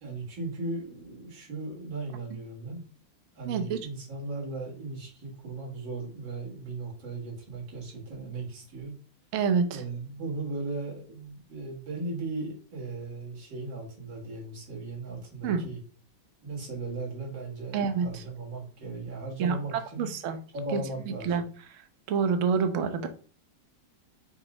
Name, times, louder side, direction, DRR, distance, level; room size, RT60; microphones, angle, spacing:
voice 1, 0.0-2.8 3.4-8.9 9.7-15.8 16.4-20.1 20.5-21.4, right 3 dB, 85° right, -3 dB, 2.6 m, -37 dB
voice 2, 3.4-3.8 9.3-9.8 15.4-15.7 17.7-18.2 19.4-20.4 20.7-20.8 21.2-21.4 22.1-23.1, right 6 dB, 65° right, 8 dB, 0.7 m, -27 dB
5.1 x 2.0 x 4.8 m, 0.39 s
omnidirectional pair, 2.0 m